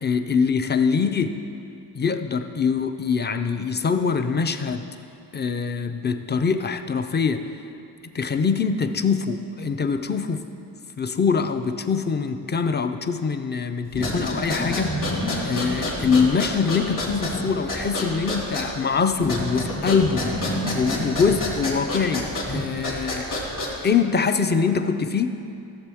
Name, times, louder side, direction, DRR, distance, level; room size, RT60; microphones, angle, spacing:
voice 1, 0.0-1.4 1.9-4.9 5.3-7.5 8.1-10.4 11.0-15.0 15.4-20.4 20.7-23.3 23.8-25.4, left 5 dB, 25° left, 9 dB, 0.4 m, -23 dB
sound 1, 13.9-24.0, left 1 dB, 45° left, 2.3 m, -28 dB
14.0 x 7.5 x 3.5 m, 2.7 s
wide cardioid pair, 120°, 43 cm